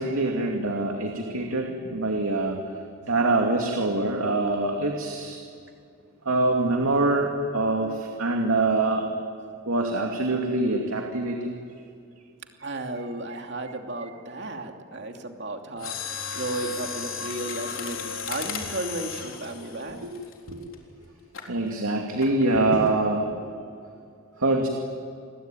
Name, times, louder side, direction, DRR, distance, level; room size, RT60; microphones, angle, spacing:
voice 1, 0.0-2.6 3.1-5.4 6.3-9.1 9.7-11.6 20.0-20.1 20.5-20.6 21.5-23.3 24.4-24.7, right 2 dB, 80° right, 1 dB, 2.6 m, -24 dB
voice 2, 12.6-15.9 16.3-20.0, right 2 dB, 50° right, 3 dB, 2.7 m, -34 dB
Mechanisms, 15.8-20.7 21.3-21.6 22.2-22.5 22.9-23.0, left 6 dB, 70° left, 3.8 m, -35 dB
29.0 x 22.0 x 9.3 m, 2.4 s
head